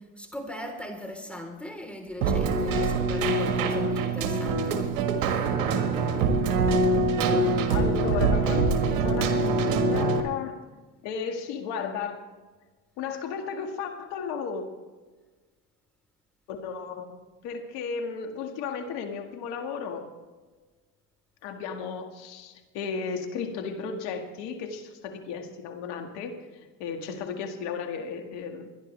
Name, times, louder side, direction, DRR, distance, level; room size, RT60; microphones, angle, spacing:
voice 1, 0.0-4.9, left 1 dB, 5° left, 3 dB, 3.8 m, -39 dB
Keyboard (musical), 2.2-10.2, right 3 dB, 90° right, 1.7 m, -24 dB
voice 2, 7.7-10.6 11.0-12.2 13.0-14.6 16.5-20.1 21.4-28.7, left 6 dB, 80° left, 4 dB, 2.1 m, -34 dB
24.5 x 11.0 x 3.4 m, 1.3 s
supercardioid pair, 70°, 41 cm